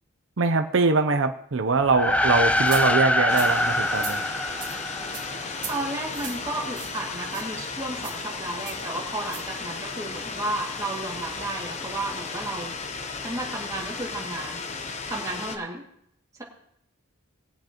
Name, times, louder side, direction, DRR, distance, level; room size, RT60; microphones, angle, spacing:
voice 1, 0.4-4.2, right 3 dB, 60° right, 8 dB, 0.6 m, -23 dB
sound 1, 1.8-5.5, left 1 dB, 5° left, 0.3 m, -24 dB
sound 2, 2.7-2.8 3.3-3.5 3.9-4.2 4.6-4.7 5.1-5.3 5.6-5.7 6.1-6.4 6.7-7.0 7.3-7.4 8.0-8.2 8.7-8.8 9.2-9.4, right 7 dB, 40° right, 2.3 m, -37 dB
sound 3, 3.3-15.6, left 4 dB, 30° left, 0.8 m, -35 dB
voice 2, 5.7-12.7 13.2-14.6 15.1-15.8, right 2 dB, 15° right, -3 dB, 2.2 m, -33 dB
21.0 x 7.8 x 3.0 m, 0.72 s
head